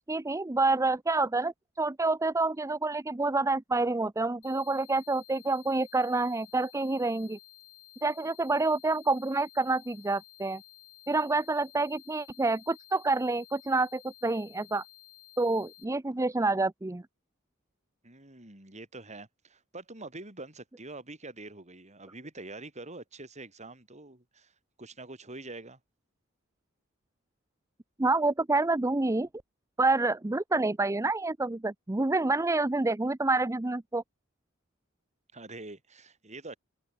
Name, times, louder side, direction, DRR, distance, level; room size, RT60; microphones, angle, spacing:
voice 1, 0.0-7.4 8.0-10.6 11.1-14.8 15.4-17.0 28.0-29.3 29.8-34.0, right 3 dB, 15° right, 0.6 m, -28 dB
sound 1, 4.4-15.8, left 15 dB, 85° left, 7.1 m, -54 dB
voice 2, 18.0-24.5 24.8-25.8 35.3-36.6, right 2 dB, 35° right, 6.7 m, -45 dB
head